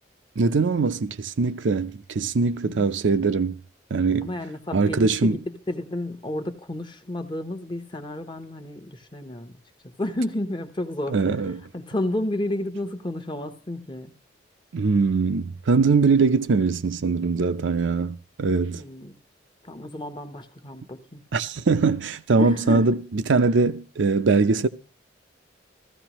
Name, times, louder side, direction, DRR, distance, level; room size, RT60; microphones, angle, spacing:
voice 1, 0.4-3.6 3.9-4.3 4.7-5.4 11.1-11.6 14.7-18.8 21.3-23.0 23.3-24.7, right 4 dB, 70° right, 0.5 m, -22 dB
voice 2, 4.2-9.6 9.8-11.4 11.7-14.1 18.7-19.2 19.6-21.2 22.4-22.9, left 1 dB, 25° left, 0.8 m, -31 dB
15.0 x 14.5 x 3.0 m
head